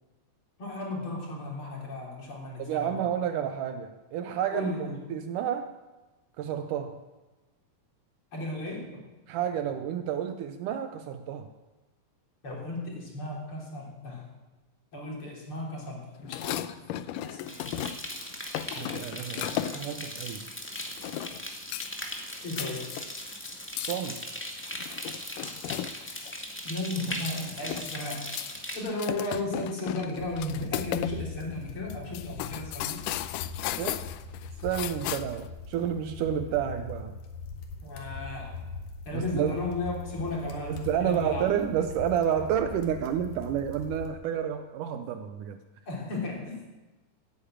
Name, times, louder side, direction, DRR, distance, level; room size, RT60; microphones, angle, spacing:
voice 1, 0.6-2.9 4.5-5.0 8.3-9.0 12.4-14.3 14.9-16.6 17.2-17.5 22.4-22.9 26.6-28.3 28.7-33.0 37.8-38.6 39.1-41.5 45.9-46.7, left 2 dB, 40° left, -2 dB, 4.0 m, -35 dB
voice 2, 2.6-4.7 5.1-5.7 6.4-7.0 9.3-11.5 18.7-20.5 23.9-24.2 33.8-34.0 34.6-37.1 39.1-39.6 40.7-45.6, right 9 dB, 75° right, 9 dB, 2.1 m, -30 dB
sound 1, 16.2-18.2 18.5-20.0 20.8-21.4 21.7-22.1 22.4-26.3 26.7-26.8 27.1-28.5 28.8-31.1 31.4-31.5 31.9-35.5, left 12 dB, 80° left, 2.1 m, -35 dB
sound 2, 17.5-28.8, equal, 5° left, 0.9 m, -39 dB
sound 3, 30.2-44.1, left 4 dB, 60° left, 3.0 m, -41 dB
15.5 x 9.5 x 8.9 m, 1.1 s
omnidirectional pair, 4.0 m